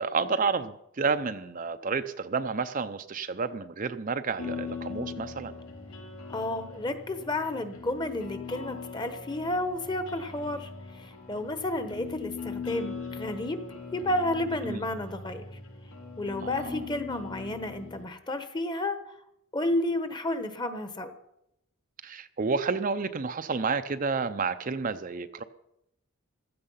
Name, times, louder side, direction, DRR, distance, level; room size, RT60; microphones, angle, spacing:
voice 1, 0.0-5.5 14.6-14.8 16.4-16.9 22.0-25.4, right 4 dB, 40° right, 10 dB, 0.5 m, -30 dB
sound 1, 4.4-18.0, left 5 dB, 90° left, 4.9 m, -41 dB
voice 2, 6.3-13.6 13.9-15.5 16.2-19.0 19.5-21.1, left 1 dB, 20° left, 10 dB, 1.1 m, -31 dB
15.5 x 13.5 x 5.6 m, 0.81 s
head